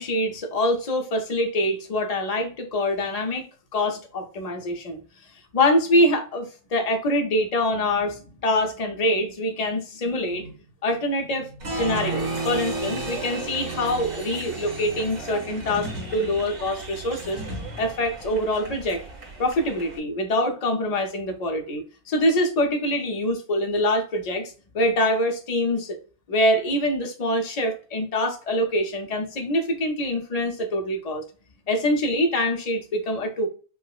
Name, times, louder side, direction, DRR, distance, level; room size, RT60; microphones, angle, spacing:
voice 1, 0.0-3.5 3.7-5.0 5.5-10.6 10.8-17.4 17.8-19.0 19.4-26.0 26.3-31.2 31.7-33.5, left 1 dB, 40° left, 0.5 m, -25 dB
Applause, 11.6-20.0, right 2 dB, 70° right, 1.4 m, -33 dB
4.8 x 2.0 x 2.4 m
omnidirectional pair, 1.5 m